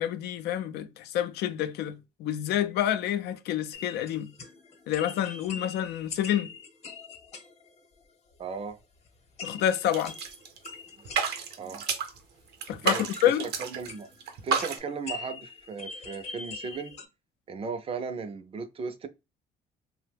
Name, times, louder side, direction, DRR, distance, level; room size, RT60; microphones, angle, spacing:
voice 1, 0.0-4.3 4.9-6.5 9.4-10.1 12.7-13.5, left 11 dB, 75° left, 0.4 m, -28 dB
sound 1, 3.7-8.4 8.7-12.5 12.9-17.1, left 5 dB, 40° left, 0.9 m, -43 dB
voice 2, 8.4-8.8 11.6-11.8 12.8-13.1 13.4-14.1 14.4-16.9 17.5-19.1, right 5 dB, 35° right, 0.5 m, -36 dB
sound 2, 9.7-10.8 11.1-12.2 12.6-13.9 14.2-14.8, right 6 dB, 75° right, 0.7 m, -30 dB
2.8 x 2.1 x 3.3 m
cardioid pair, 110°, 17 cm